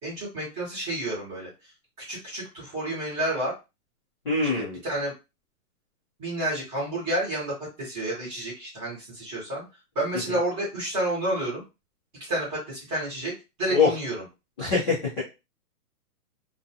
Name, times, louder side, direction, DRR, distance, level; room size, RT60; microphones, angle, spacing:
voice 1, 0.0-1.5 2.0-3.5 4.6-5.1 6.2-9.6 9.9-11.6 12.3-13.3 13.6-14.2, right 1 dB, 15° right, -5 dB, 0.9 m, -30 dB
voice 2, 4.2-4.8 10.3-10.4 13.7-13.9 14.6-15.2, left 5 dB, 20° left, -10 dB, 0.5 m, -23 dB
2.5 x 2.2 x 2.7 m, 0.27 s
hypercardioid pair, 160°, 46 cm